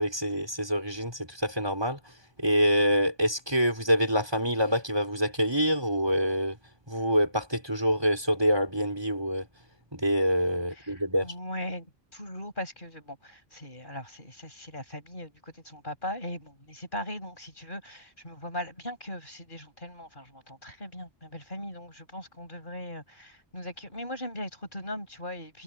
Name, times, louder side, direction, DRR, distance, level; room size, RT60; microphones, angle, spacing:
voice 1, 0.0-2.0 2.4-6.6 6.9-9.5 9.9-11.3, equal, 20° right, 5.6 m, -26 dB
voice 2, 10.7-25.6, left 1 dB, 45° left, 7.5 m, -39 dB
omnidirectional pair, 1.2 m